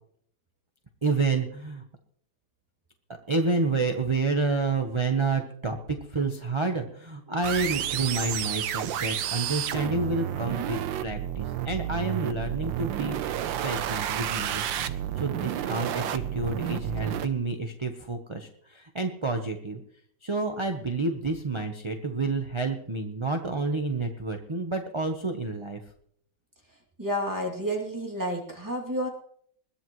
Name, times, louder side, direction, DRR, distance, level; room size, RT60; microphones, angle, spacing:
voice 1, 1.0-1.8 3.3-5.8 6.1-19.8 20.2-25.8, right 3 dB, 30° right, 3 dB, 0.6 m, -29 dB
sound 1, 7.4-17.3, right 11 dB, 85° right, 1.5 m, -31 dB
voice 2, 27.0-29.1, equal, 10° right, -1 dB, 2.6 m, -30 dB
21.0 x 14.5 x 3.1 m, 0.65 s
omnidirectional pair, 2.0 m